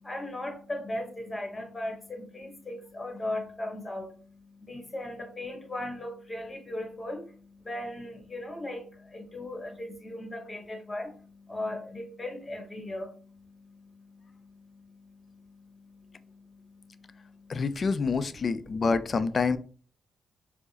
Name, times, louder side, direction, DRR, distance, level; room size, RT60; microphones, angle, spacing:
voice 1, 0.0-17.6 18.6-18.8, left 1 dB, 25° left, 4 dB, 1.1 m, -39 dB
voice 2, 17.5-19.6, left 4 dB, 45° left, 13 dB, 0.3 m, -27 dB
4.5 x 2.0 x 2.8 m, 0.41 s
cardioid pair, 80°, 0 cm